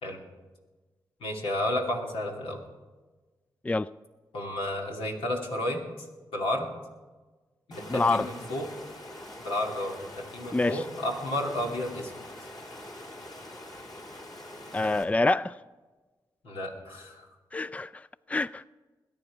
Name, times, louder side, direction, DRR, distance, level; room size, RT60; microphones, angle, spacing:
voice 1, 1.2-2.6 4.3-6.1 6.3-6.7 7.7-8.7 9.4-12.1 16.4-17.3, left 1 dB, 85° left, 2.6 m, -32 dB
Water, 7.7-15.0, left 1 dB, 45° left, 3.9 m, -44 dB
voice 2, 7.9-8.3 10.5-10.8 14.7-15.6 17.5-18.6, left 2 dB, 15° left, 0.4 m, -26 dB
21.5 x 9.5 x 5.0 m
supercardioid pair, 40°, 9 cm